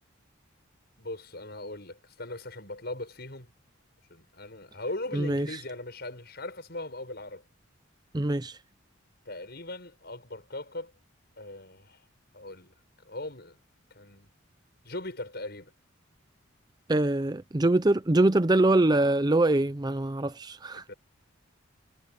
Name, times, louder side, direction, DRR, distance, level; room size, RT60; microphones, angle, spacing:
voice 1, 1.0-3.5 4.1-7.4 9.3-10.9 11.4-12.0 12.3-12.7 13.0-13.6 13.9-14.3 14.8-15.7 20.7-20.9, left 2 dB, 55° left, 7.3 m, -39 dB
voice 2, 5.1-5.5 8.1-8.6 16.9-20.8, right 2 dB, 20° right, 0.5 m, -24 dB
head